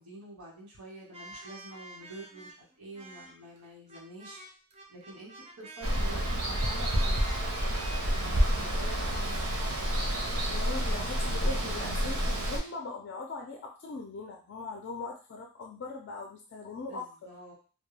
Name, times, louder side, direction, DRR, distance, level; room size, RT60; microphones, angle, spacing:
voice 1, 0.0-4.4 4.9-9.4 16.9-17.5, right 2 dB, 90° right, -4 dB, 1.1 m, -47 dB
sound 1, 1.1-9.4, right 1 dB, 30° right, 0.4 m, -48 dB
Water, 5.8-12.6, equal, 75° right, 0.7 m, -29 dB
voice 2, 10.3-17.0, left 3 dB, 55° left, 2 dB, 0.3 m, -40 dB
2.2 x 2.1 x 3.1 m, 0.37 s
head